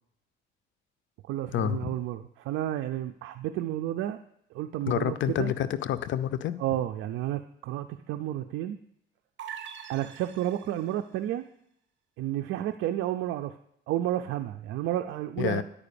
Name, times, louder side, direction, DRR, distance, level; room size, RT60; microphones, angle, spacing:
voice 1, 1.3-4.2 4.5-5.5 6.6-8.8 9.9-11.5 12.2-13.6 13.9-15.6, right 13 dB, 90° right, 8 dB, 0.4 m, -31 dB
voice 2, 4.9-6.6 15.4-15.6, left 11 dB, 75° left, 14 dB, 0.6 m, -28 dB
sound 1, 9.4-11.0, right 8 dB, 70° right, 0.9 m, -43 dB
10.0 x 4.9 x 6.8 m, 0.73 s
cardioid pair, 90°, 20 cm